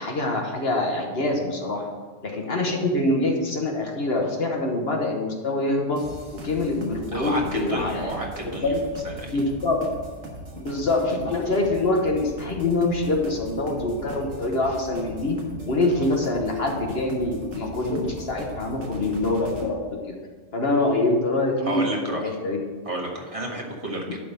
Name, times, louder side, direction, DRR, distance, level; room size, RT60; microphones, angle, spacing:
voice 1, 0.0-1.8 2.2-6.0 6.3-8.1 8.6-8.8 9.3-9.9 10.5-15.4 15.7-19.8 20.5-22.6, left 2 dB, 50° left, 1 dB, 1.4 m, -25 dB
sound 1, 6.0-19.7, right 1 dB, 75° right, 1.9 m, -40 dB
voice 2, 7.1-8.7 9.0-9.4 21.6-22.4 22.8-24.2, right 1 dB, 25° right, -1 dB, 1.6 m, -31 dB
11.5 x 3.9 x 6.9 m, 1.5 s
omnidirectional pair, 1.3 m